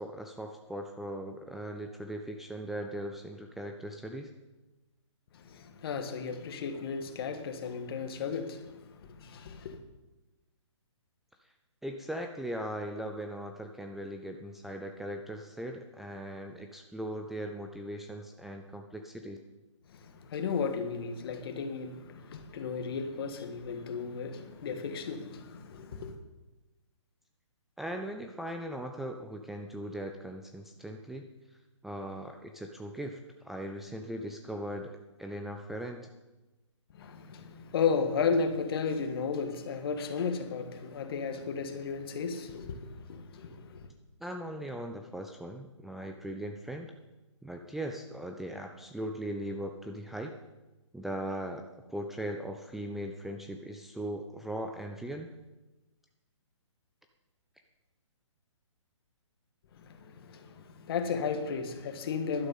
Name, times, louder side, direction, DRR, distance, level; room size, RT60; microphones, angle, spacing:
voice 1, 0.0-4.3 11.8-19.4 27.8-31.3 31.8-36.1 44.2-46.9 47.4-50.3 50.9-55.3, right 1 dB, ahead, 3 dB, 0.4 m, -39 dB
voice 2, 5.3-9.8 19.9-26.2 36.9-43.9 59.8-62.5, left 5 dB, 50° left, 8 dB, 1.7 m, -34 dB
12.0 x 11.5 x 5.5 m, 1.1 s
hypercardioid pair, 145°, 16 cm